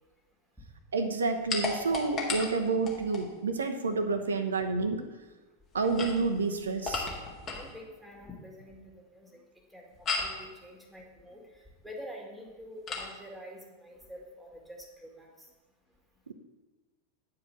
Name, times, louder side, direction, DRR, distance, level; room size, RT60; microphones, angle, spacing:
voice 1, 0.9-5.0 5.7-7.1 16.3-16.4, right 3 dB, 70° right, 7 dB, 0.9 m, -29 dB
sound 1, 1.5-3.3 5.8-7.7 10.1-10.4 12.9-13.1, left 3 dB, 30° left, 1.8 m, -34 dB
voice 2, 7.5-9.4 9.7-15.5, equal, ahead, 0 dB, 2.2 m, -47 dB
9.8 x 4.8 x 7.4 m, 1.2 s
figure-of-eight pair, 90°, 0 cm